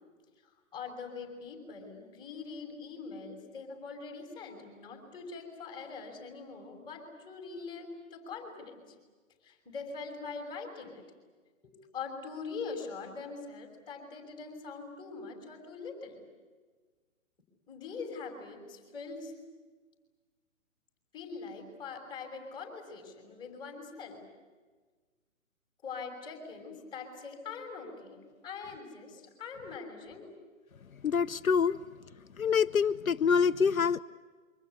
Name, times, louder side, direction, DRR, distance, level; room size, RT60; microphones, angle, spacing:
voice 1, 0.7-8.8 9.4-11.0 11.9-16.2 17.7-19.3 21.1-24.2 25.8-30.3, left 4 dB, 10° left, 1 dB, 6.2 m, -43 dB
voice 2, 31.0-31.8 32.4-34.0, left 6 dB, 85° left, 12 dB, 0.8 m, -26 dB
28.0 x 25.0 x 8.3 m, 1.4 s
figure-of-eight pair, 140°, 41 cm